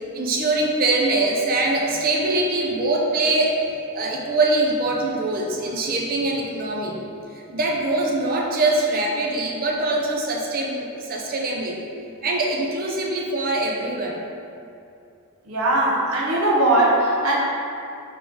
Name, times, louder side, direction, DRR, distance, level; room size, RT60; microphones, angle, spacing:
voice 1, 0.1-3.6 3.9-7.0 7.5-11.8 12.2-14.2, right 2 dB, 45° right, -1 dB, 0.5 m, -23 dB
voice 2, 15.5-17.4, right 1 dB, 85° right, -4 dB, 0.8 m, -19 dB
3.8 x 3.6 x 3.4 m, 2.6 s
head